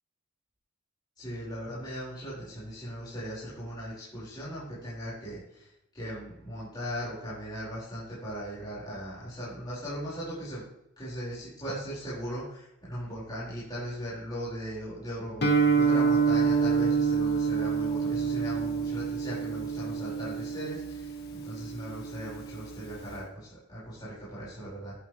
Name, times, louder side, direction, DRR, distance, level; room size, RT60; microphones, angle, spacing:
voice 1, 1.2-10.6 11.0-24.9, equal, 20° left, -10 dB, 4.8 m, -38 dB
Guitar, 15.4-23.2, right 5 dB, 50° left, 1.6 m, -27 dB
11.5 x 10.5 x 3.2 m, 0.82 s
head